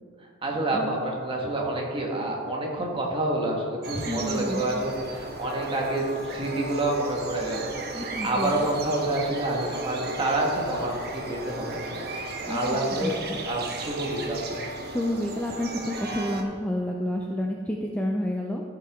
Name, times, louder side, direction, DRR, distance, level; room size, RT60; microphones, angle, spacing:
voice 1, 0.4-13.1 13.4-14.5, right 2 dB, 25° right, -1 dB, 1.5 m, -28 dB
sound 1, 3.8-16.4, right 2 dB, 50° right, 0.9 m, -35 dB
voice 2, 3.9-4.8 7.9-8.6 12.5-12.6 13.0-13.4 14.9-18.6, left 1 dB, 5° left, 0 dB, 0.4 m, -30 dB
14.0 x 5.9 x 3.6 m, 2.2 s
head